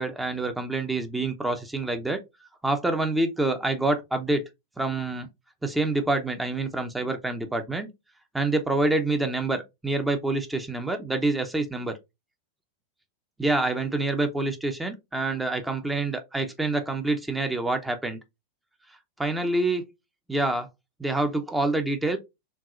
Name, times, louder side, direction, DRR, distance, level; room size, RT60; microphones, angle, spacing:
voice 1, 0.0-2.2 2.6-4.4 4.8-5.3 5.6-7.9 8.3-12.0 13.4-18.2 19.2-19.9 20.3-20.7 21.0-22.2, right 2 dB, 5° right, 0.7 m, -26 dB
4.7 x 3.7 x 2.4 m
figure-of-eight pair, 90°, 0 cm